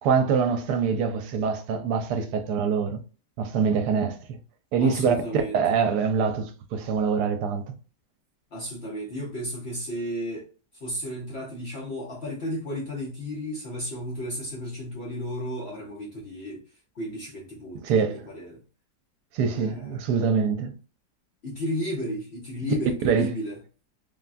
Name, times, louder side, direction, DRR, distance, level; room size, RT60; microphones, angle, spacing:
voice 1, 0.0-3.0 3.4-4.4 4.7-7.7 17.8-18.3 19.3-20.8 23.0-23.3, right 6 dB, 75° right, 1.1 m, -24 dB
voice 2, 4.8-5.8 8.5-10.5 10.8-16.6 17.0-18.6 19.5-20.0 21.4-23.6, equal, 55° left, 0.8 m, -33 dB
3.4 x 2.2 x 2.4 m
omnidirectional pair, 1.8 m